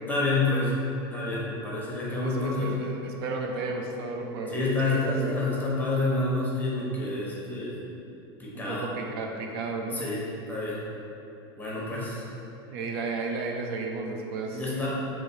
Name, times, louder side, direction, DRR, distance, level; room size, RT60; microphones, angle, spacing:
voice 1, 0.1-0.7 1.1-2.7 4.5-7.8 8.4-8.9 9.9-10.2 10.5-10.8 11.6-12.2 14.5-14.9, left 2 dB, 15° left, -6 dB, 1.1 m, -28 dB
voice 2, 2.1-5.3 8.5-10.0 12.7-14.6, right 3 dB, 75° right, 1 dB, 0.6 m, -33 dB
3.2 x 3.0 x 4.5 m, 2.9 s
supercardioid pair, 115°, 13 cm